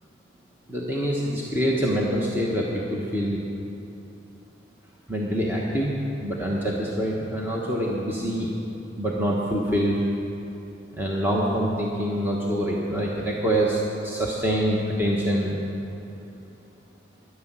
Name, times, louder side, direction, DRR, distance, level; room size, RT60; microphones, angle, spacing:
voice 1, 0.7-3.4 5.1-5.9 6.2-8.5 9.0-10.0 10.9-15.6, equal, 10° right, -4 dB, 1.1 m, -25 dB
12.0 x 11.0 x 7.4 m, 2.9 s
head